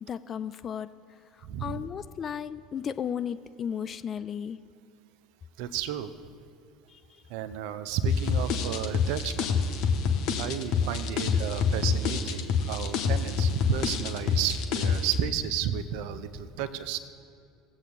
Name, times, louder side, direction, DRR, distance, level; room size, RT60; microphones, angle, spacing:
voice 1, 0.1-0.9 1.6-4.6 6.9-7.0, left 8 dB, 35° left, 12 dB, 0.3 m, -34 dB
voice 2, 1.4-1.8 5.6-6.1 7.3-9.5 10.4-17.0, right 10 dB, 60° right, 11 dB, 0.5 m, -32 dB
sound 1, 8.1-15.2, left 5 dB, 55° left, 0.9 m, -27 dB
17.5 x 7.9 x 2.5 m, 2.5 s
figure-of-eight pair, 70°, 0 cm